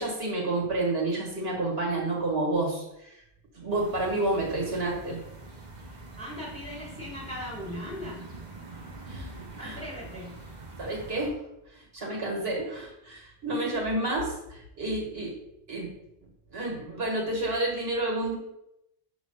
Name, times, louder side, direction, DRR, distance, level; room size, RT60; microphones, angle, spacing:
voice 1, 0.0-3.2 3.5-5.2 9.1-9.8 10.8-11.4 11.7-15.3 15.7-15.9 16.5-18.3, right 2 dB, 70° right, -2 dB, 2.0 m, -30 dB
sound 1, 3.7-11.3, right 2 dB, 45° right, 1.0 m, -44 dB
voice 2, 6.2-8.2 9.6-10.4, left 1 dB, 5° left, -3 dB, 1.7 m, -39 dB
5.9 x 3.2 x 5.7 m, 0.84 s
omnidirectional pair, 1.1 m